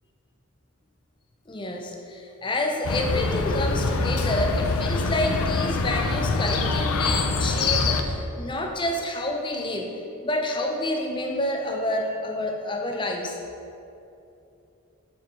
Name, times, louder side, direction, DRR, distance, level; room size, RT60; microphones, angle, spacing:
voice 1, 1.5-9.9 10.2-13.4, left 1 dB, 20° left, 2 dB, 0.5 m, -28 dB
Chirp tweet, 2.8-8.0, left 3 dB, 85° left, 0.5 m, -25 dB
7.2 x 4.7 x 4.7 m, 2.8 s
head